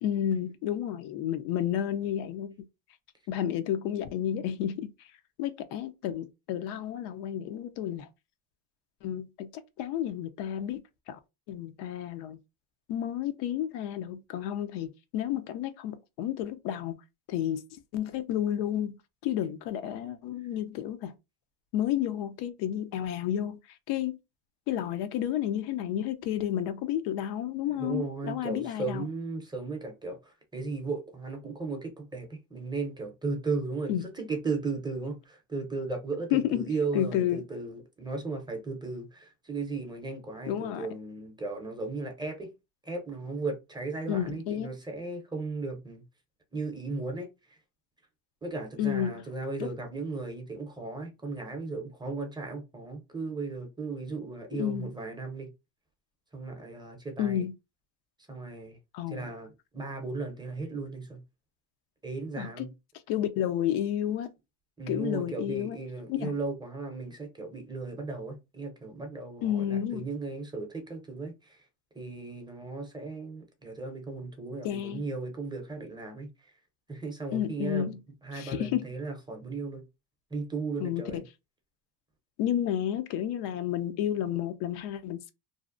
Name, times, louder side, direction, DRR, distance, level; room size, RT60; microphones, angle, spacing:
voice 1, 0.0-2.5 3.3-4.9 5.4-8.1 9.0-10.8 11.1-11.2 11.5-12.4 12.9-17.0 17.3-17.6 17.9-21.1 21.7-23.6 23.9-24.2 24.7-29.1 33.9-34.1 36.3-37.4 40.5-40.9 44.1-44.7 48.8-49.2 49.6-49.7 54.5-54.9 57.2-57.5 58.9-59.3 62.4-62.7 63.1-64.3 64.9-65.8 66.1-66.3 69.4-70.1 74.6-75.1 77.3-78.0 78.3-78.9 80.8-81.2 82.4-85.3, left 10 dB, 80° left, 0.6 m, -31 dB
voice 2, 27.7-42.5 42.8-46.0 46.5-47.6 48.4-55.5 56.3-57.4 58.3-58.8 59.1-61.2 62.0-62.7 64.8-71.6 71.9-76.3 76.9-77.9 78.2-79.9 80.3-81.2, right 3 dB, 10° right, 0.6 m, -36 dB
2.7 x 2.0 x 2.4 m
cardioid pair, 115°, 40 cm